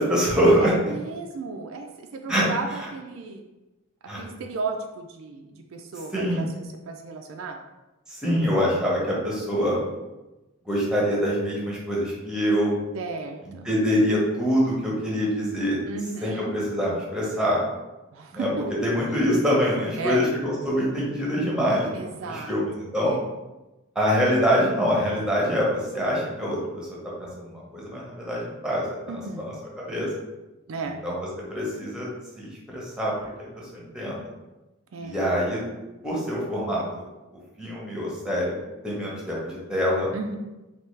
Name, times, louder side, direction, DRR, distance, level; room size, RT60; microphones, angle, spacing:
voice 1, 0.0-0.7 2.3-2.4 4.1-4.2 6.1-6.4 8.1-9.8 10.7-12.8 13.5-15.8 16.2-17.6 18.3-18.5 18.8-23.1 23.9-26.9 27.2-28.8 29.8-30.1 31.0-31.2 31.5-32.1 32.4-33.1 33.7-34.2 35.0-35.7 36.0-37.1 37.6-38.5 38.8-40.1, equal, 5° right, -5 dB, 0.7 m, -24 dB
voice 2, 0.6-3.4 4.2-6.5 6.9-7.6 12.9-13.7 15.9-16.5 18.1-18.7 19.1-19.2 20.0-20.2 21.9-22.6 23.0-23.2 29.1-29.5 30.7-31.0 34.9-35.2 40.1-40.4, right 4 dB, 70° right, 4 dB, 0.3 m, -34 dB
3.3 x 2.3 x 3.2 m, 1.1 s
head